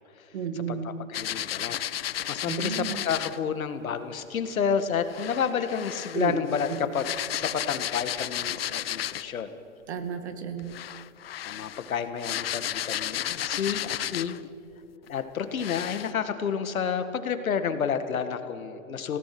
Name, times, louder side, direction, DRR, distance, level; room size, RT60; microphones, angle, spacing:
voice 1, 0.3-0.9 2.4-3.0 6.1-6.4 6.7-6.8 9.9-10.7, right 7 dB, 55° right, 8 dB, 2.3 m, -32 dB
voice 2, 1.1-1.8 2.3-9.6 11.4-14.4 15.1-19.2, left 7 dB, 85° left, 9 dB, 1.9 m, -30 dB
sound 1, 1.1-3.4 5.1-9.4 10.6-14.5 15.1-15.2 15.6-16.1, left 11 dB, 50° left, 0.4 m, -33 dB
28.0 x 17.5 x 6.1 m, 2.9 s
hypercardioid pair, 170°, 40 cm